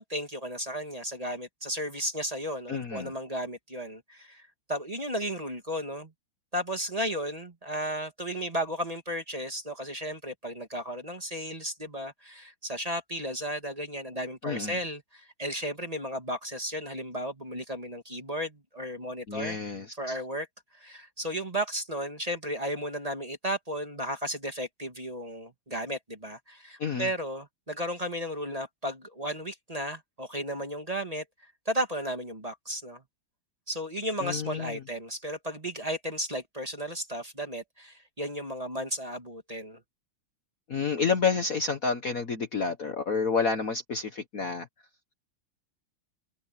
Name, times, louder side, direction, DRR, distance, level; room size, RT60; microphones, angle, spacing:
voice 1, 0.0-6.1 6.5-19.6 20.0-20.5 20.7-31.2 31.7-33.0 33.7-39.8, equal, 15° right, 2.4 m, -34 dB
voice 2, 2.7-3.1 14.4-14.8 19.3-20.2 26.8-27.1 34.2-34.8 40.7-44.7, left 5 dB, 45° left, 1.6 m, -29 dB
omnidirectional pair, 2.3 m